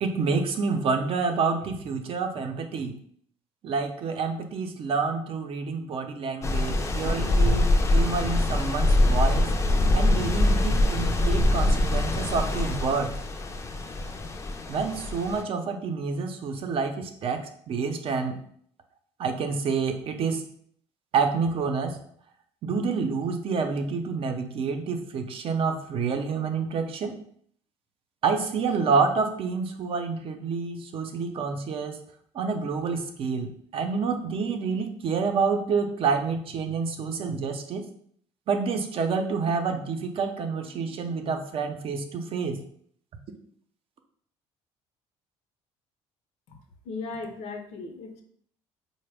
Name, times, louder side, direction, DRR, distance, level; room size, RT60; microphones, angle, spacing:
voice 1, 0.0-2.9 3.6-9.5 9.9-13.1 14.7-18.4 19.2-20.4 21.1-22.0 22.6-27.1 28.2-32.0 32.3-37.8 38.5-42.6, right 5 dB, 50° right, 5 dB, 0.5 m, -28 dB
sound 1, 6.4-15.4, left 1 dB, 25° left, 0.4 m, -24 dB
voice 2, 46.8-48.2, left 3 dB, 70° left, 4 dB, 0.7 m, -37 dB
3.9 x 2.1 x 3.4 m, 0.64 s
cardioid pair, 95°, 12 cm